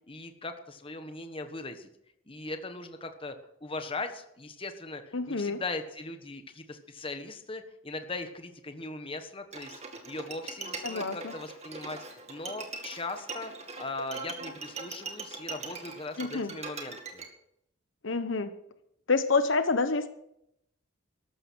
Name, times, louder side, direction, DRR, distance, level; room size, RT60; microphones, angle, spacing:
voice 1, 0.1-1.9 2.3-3.3 3.6-9.8 10.1-12.0 12.3-17.2, left 2 dB, 25° left, 7 dB, 1.3 m, -39 dB
voice 2, 5.1-5.6 10.8-11.3 16.2-16.5 18.0-18.5 19.1-20.1, left 3 dB, 65° left, 10 dB, 1.0 m, -27 dB
Bowed string instrument, 9.5-17.3, right 4 dB, 30° right, 2.1 m, -41 dB
14.0 x 12.5 x 6.3 m, 0.77 s
head